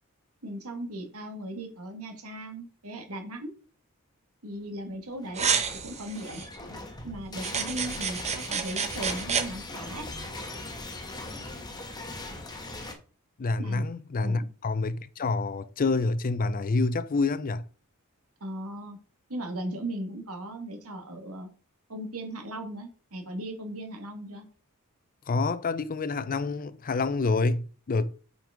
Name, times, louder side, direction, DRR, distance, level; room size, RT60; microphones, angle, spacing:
voice 1, 0.4-3.5 4.4-6.4 7.0-10.1 13.6-13.9 14.2-14.5 18.4-19.0 19.3-21.5 21.9-24.5, right 1 dB, 85° right, 1.9 m, -37 dB
sound 1, 5.1-12.9, left 2 dB, 20° left, 1.3 m, -40 dB
sound 2, 5.4-6.5 7.4-9.5, right 6 dB, 30° right, 1.0 m, -29 dB
voice 2, 13.4-17.6 25.3-28.2, left 3 dB, 40° left, 0.5 m, -27 dB
6.0 x 5.3 x 5.0 m
head